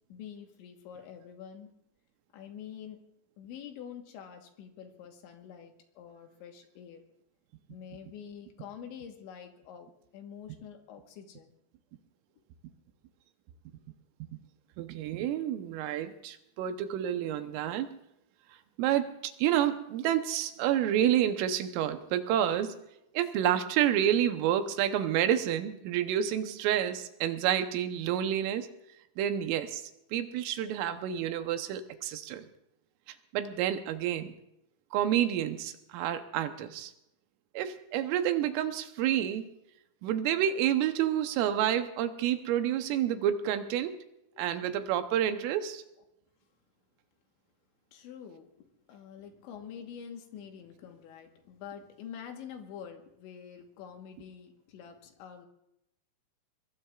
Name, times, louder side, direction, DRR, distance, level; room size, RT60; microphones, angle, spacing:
voice 1, 0.1-1.7 2.3-3.0 3.4-7.0 7.7-9.9 10.1-11.5 44.3-44.4 44.8-44.9 47.9-55.5, left 8 dB, 70° left, 4 dB, 3.3 m, -46 dB
voice 2, 14.8-17.9 18.8-22.8 23.1-28.7 29.2-32.5 33.3-34.3 34.9-36.9 37.5-39.5 40.0-44.0 44.4-45.8, right 10 dB, 80° right, 8 dB, 3.4 m, -29 dB
22.5 x 22.0 x 2.4 m, 0.82 s
omnidirectional pair, 5.9 m